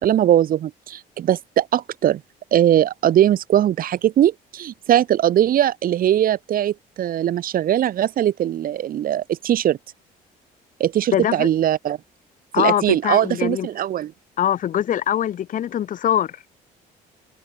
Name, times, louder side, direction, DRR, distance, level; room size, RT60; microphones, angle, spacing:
voice 1, 0.0-2.2 2.5-9.8 10.8-12.0 12.6-14.1, right 11 dB, 55° right, 1.9 m, -20 dB
voice 2, 11.1-11.5 12.5-13.7 14.4-16.5, left 10 dB, 50° left, 1.2 m, -22 dB
cardioid pair, 110°, 17 cm